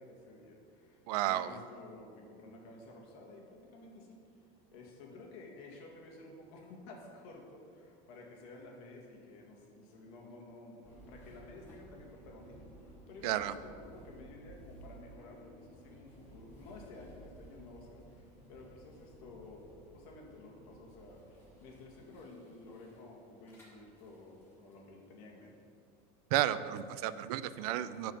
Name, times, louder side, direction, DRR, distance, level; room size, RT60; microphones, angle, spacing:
voice 1, 0.0-25.6, left 2 dB, 65° left, 0 dB, 2.0 m, -52 dB
voice 2, 1.1-1.5 13.2-13.5 26.3-28.1, right 13 dB, 80° right, 14 dB, 0.5 m, -32 dB
sound 1, 10.8-24.8, right 1 dB, 10° left, 2.5 m, -56 dB
10.5 x 4.9 x 7.1 m, 2.4 s
cardioid pair, 160°, 19 cm